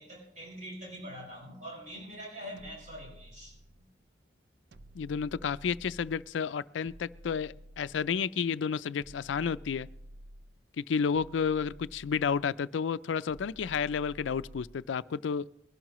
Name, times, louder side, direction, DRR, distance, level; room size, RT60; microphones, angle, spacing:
voice 1, 0.0-3.6, equal, 40° right, -2 dB, 5.7 m, -44 dB
sound 1, 2.6-3.9 4.7-6.3 6.8-8.3 9.0-10.6 11.1-12.5 13.3-14.9, right 1 dB, 65° right, 0.5 m, -51 dB
voice 2, 5.0-9.9 10.8-15.5, left 6 dB, 90° left, 16 dB, 0.4 m, -31 dB
22.0 x 12.0 x 3.0 m, 0.72 s
head